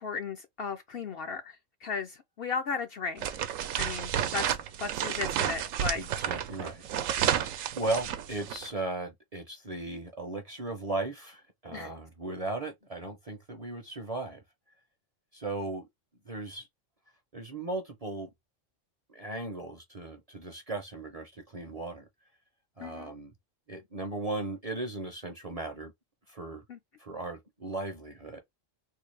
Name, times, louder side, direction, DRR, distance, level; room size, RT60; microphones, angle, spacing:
voice 1, 0.0-3.3 3.8-4.5 4.8-6.0 7.2-7.5 11.7-11.9 22.8-23.1 26.7-26.8, left 5 dB, 60° left, 0.6 m, -36 dB
sound 1, 3.2-8.7, right 9 dB, 80° right, 1.0 m, -31 dB
voice 2, 5.9-6.8 7.7-14.4 15.3-15.9 16.3-16.7 17.3-18.3 19.1-22.1 22.8-23.3 23.7-25.9 26.3-26.6 27.0-28.4, right 2 dB, 40° right, 0.6 m, -37 dB
3.8 x 2.3 x 3.2 m
omnidirectional pair, 1.3 m